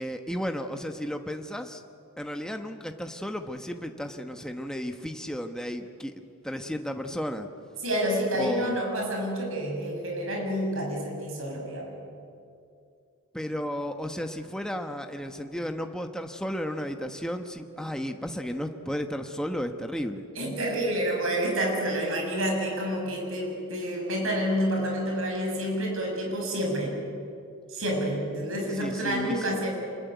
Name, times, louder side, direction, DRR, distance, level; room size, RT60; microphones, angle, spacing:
voice 1, 0.0-1.8 2.2-6.1 6.4-7.5 8.3-8.8 13.3-20.3 28.7-29.6, equal, 5° left, 5 dB, 1.0 m, -33 dB
voice 2, 7.8-12.0 20.4-26.9 27.7-29.7, equal, 70° right, 1 dB, 7.1 m, -28 dB
25.5 x 22.0 x 9.4 m, 2.4 s
head